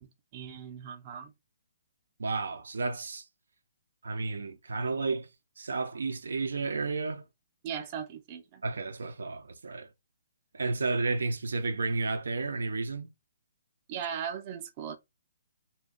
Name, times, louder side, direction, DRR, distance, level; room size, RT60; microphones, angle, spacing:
voice 1, 0.0-1.3 7.6-8.6 13.9-14.9, right 8 dB, 30° right, 0.5 m, -38 dB
voice 2, 2.2-3.2 4.0-5.3 5.6-7.2 8.6-9.9 10.5-13.1, right 3 dB, 85° right, 0.5 m, -32 dB
2.6 x 2.2 x 3.7 m
hypercardioid pair, 165°, 0 cm